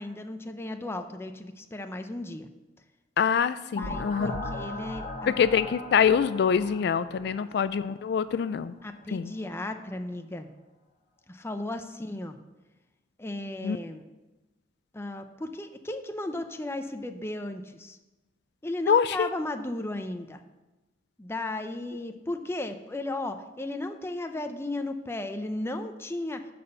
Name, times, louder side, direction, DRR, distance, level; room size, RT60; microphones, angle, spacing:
voice 1, 0.0-2.5 3.8-5.3 7.2-7.5 8.8-10.5 11.3-12.4 13.2-14.0 14.9-18.0 18.6-20.4 21.2-26.5, left 2 dB, 15° left, 7 dB, 0.6 m, -35 dB
voice 2, 3.2-4.3 5.3-8.7 9.1-9.3 13.6-13.8 18.9-19.3, left 7 dB, 65° left, 14 dB, 0.3 m, -25 dB
sound 1, 3.7-8.4, left 2 dB, 35° left, 1.5 m, -38 dB
12.0 x 4.2 x 6.8 m, 1.1 s
head